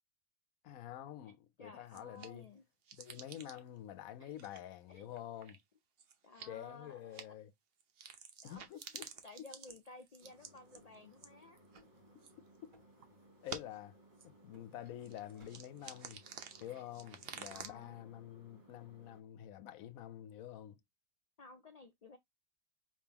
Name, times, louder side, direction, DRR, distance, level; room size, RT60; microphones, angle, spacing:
voice 1, 0.6-2.5 2.9-5.6 6.5-7.5 8.4-9.0 12.6-12.7 13.4-14.0 14.2-16.2 16.6-20.8, left 11 dB, 90° left, 1.0 m, -48 dB
voice 2, 1.6-2.6 4.2-4.3 4.9-5.1 6.2-7.3 8.4-8.8 9.2-11.6 15.4-15.5 16.7-16.9 17.5-18.1 21.4-22.2, left 3 dB, 45° left, 0.5 m, -55 dB
sound 1, 1.9-2.4 2.8-3.8 4.3-4.6 5.1-5.6 6.0-6.6 7.1-7.2 7.8-11.8 12.2-12.6 13.0-13.1 13.4-13.8 14.2-14.3 14.8-17.7, right 6 dB, 50° right, 0.8 m, -51 dB
sound 2, 8.5-10.5 10.7-11.5 11.8-12.4 12.7-13.3 13.6-15.1 15.4-15.7, equal, 85° right, 3.2 m, -69 dB
sound 3, 10.2-19.2, right 1 dB, 35° right, 1.4 m, -64 dB
4.9 x 3.6 x 2.9 m
omnidirectional pair, 1.4 m